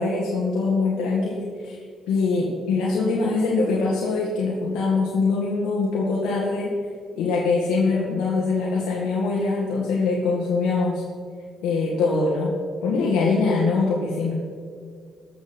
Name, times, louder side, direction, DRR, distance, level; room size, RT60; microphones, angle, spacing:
voice 1, 0.0-1.8 2.1-6.7 7.2-11.0 11.6-12.5 12.8-14.3, left 3 dB, 90° left, -4 dB, 1.9 m, -23 dB
20.0 x 7.3 x 4.5 m, 2.1 s
cardioid pair, 90°, 0 cm